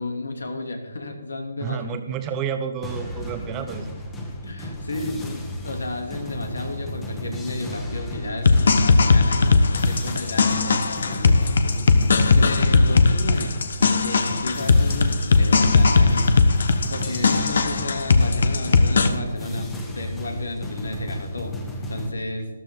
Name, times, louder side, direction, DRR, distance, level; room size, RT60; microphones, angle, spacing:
voice 1, 0.0-1.8 4.4-13.5 14.0-16.3 16.9-21.6 21.9-22.5, left 2 dB, 85° left, 4 dB, 2.8 m, -32 dB
voice 2, 1.6-3.9, right 7 dB, 20° right, 8 dB, 1.0 m, -30 dB
sound 1, 2.8-22.1, left 1 dB, 10° left, 1.6 m, -34 dB
sound 2, 8.4-19.1, left 4 dB, 65° left, 1.2 m, -18 dB
13.5 x 12.5 x 3.8 m, 1.2 s
hypercardioid pair, 160°, 0 cm